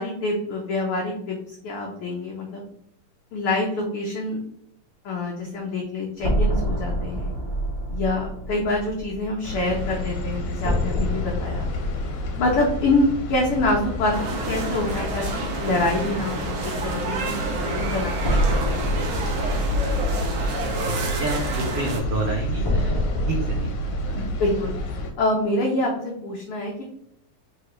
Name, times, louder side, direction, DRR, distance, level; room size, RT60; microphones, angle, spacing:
voice 1, 0.0-2.6 3.3-4.4 5.0-7.3 7.9-11.7 12.4-18.4 18.7-18.8 24.1-24.8 25.2-26.8, left 2 dB, 85° left, -2 dB, 1.2 m, -26 dB
sound 1, 6.2-14.0 14.3-14.4 18.2-23.6, equal, 35° left, 0.4 m, -28 dB
sound 2, 9.4-25.1, left 1 dB, 70° left, 1.5 m, -29 dB
sound 3, 14.1-22.0, right 3 dB, 70° right, 1.6 m, -30 dB
voice 2, 20.8-24.3, right 3 dB, 85° right, 1 dB, 1.3 m, -30 dB
4.6 x 3.3 x 2.8 m, 0.79 s
omnidirectional pair, 3.3 m